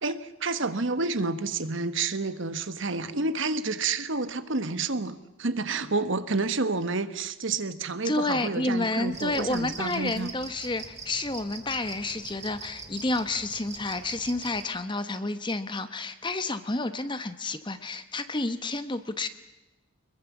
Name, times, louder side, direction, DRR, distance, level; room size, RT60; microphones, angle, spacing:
voice 1, 0.0-10.3, right 3 dB, 60° right, 12 dB, 1.2 m, -29 dB
voice 2, 8.0-19.3, left 2 dB, 20° left, 11 dB, 1.0 m, -30 dB
sound 1, 9.1-14.6, right 4 dB, 30° right, 2.2 m, -43 dB
24.0 x 22.0 x 7.2 m, 1.0 s
head